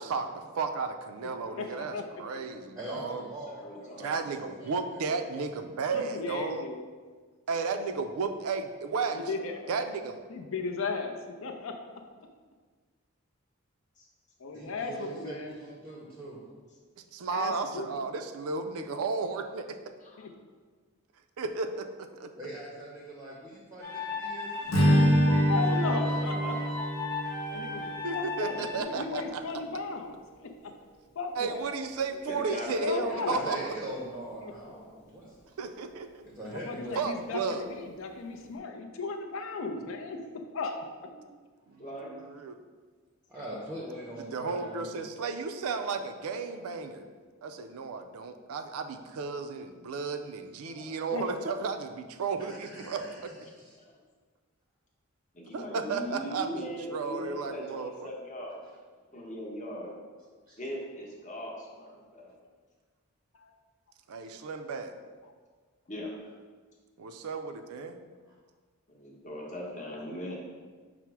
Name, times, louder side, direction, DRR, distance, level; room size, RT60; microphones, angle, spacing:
voice 1, 0.0-3.2 4.0-6.6 7.5-9.2 9.7-10.2 17.1-19.8 21.4-22.3 28.0-29.4 31.4-33.7 35.6-36.2 36.9-37.7 38.4-38.6 41.7-42.6 44.3-47.1 47.4-53.4 55.5-58.1 64.1-65.0 67.0-68.0, right 4 dB, 75° right, 8 dB, 0.4 m, -34 dB
voice 2, 1.6-2.0 5.9-6.8 9.1-9.7 10.3-11.7 14.4-15.6 17.3-17.9 20.2-20.3 25.5-26.7 27.5-30.7 31.1-31.7 32.8-33.5 34.4-34.5 36.5-40.2 40.5-40.8 51.1-51.2 63.3-63.5, left 4 dB, 60° left, 4 dB, 0.5 m, -36 dB
voice 3, 2.7-5.4 14.5-16.4 22.4-25.3 25.7-26.6 33.1-35.4 36.2-37.1 43.3-45.0 52.5-53.2 53.7-53.8 60.5-60.6, right 1 dB, 15° right, -4 dB, 0.6 m, -42 dB
voice 4, 3.5-4.2 14.0-14.1 20.0-20.3 32.2-33.4 33.8-34.0 41.8-42.2 50.6-50.9 53.8-54.0 55.3-58.6 59.1-59.9 60.6-62.3 65.9-66.1 68.9-70.4, equal, 35° left, -2 dB, 0.8 m, -40 dB
sound 1, 23.8-28.8, left 3 dB, 10° left, 0.9 m, -36 dB
Strum, 24.7-29.1, equal, 90° left, 0.8 m, -26 dB
5.7 x 2.0 x 4.5 m, 1.5 s
head